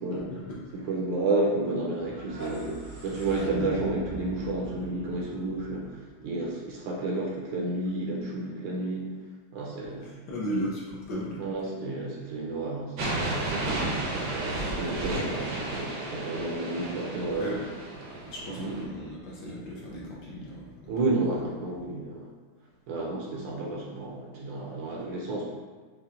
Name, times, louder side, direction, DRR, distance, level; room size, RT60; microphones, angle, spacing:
voice 1, 0.1-0.6 3.6-3.7 10.0-11.5 17.2-17.6 18.3-20.9 21.3-21.4, equal, 70° left, -4 dB, 1.0 m, -36 dB
voice 2, 0.7-9.1 9.5-10.1 11.4-13.8 14.1-17.5 18.6-18.7 20.9-22.3 22.9-25.5, right 2 dB, 85° right, -3 dB, 1.6 m, -31 dB
sound 1, 2.0-6.9, equal, 45° right, 0.6 m, -41 dB
sound 2, 13.0-18.8, right 2 dB, 70° right, 1.0 m, -32 dB
5.6 x 2.2 x 2.4 m, 1.4 s
omnidirectional pair, 2.4 m